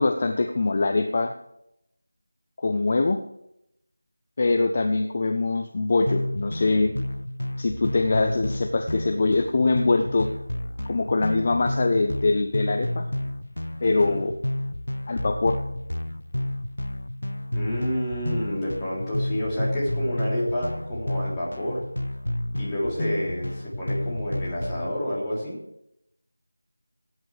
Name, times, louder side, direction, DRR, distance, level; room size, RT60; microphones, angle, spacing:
voice 1, 0.0-1.3 2.6-3.2 4.4-6.9 7.6-10.3 10.9-13.0 13.8-14.3 15.1-15.6, left 3 dB, 35° left, 6 dB, 0.7 m, -23 dB
sound 1, 6.1-24.9, left 1 dB, 85° left, 0.4 m, -31 dB
voice 2, 13.8-14.2 17.5-21.9 22.5-25.6, equal, 10° left, -9 dB, 3.6 m, -29 dB
17.5 x 9.3 x 3.5 m, 0.80 s
figure-of-eight pair, 170°, 0 cm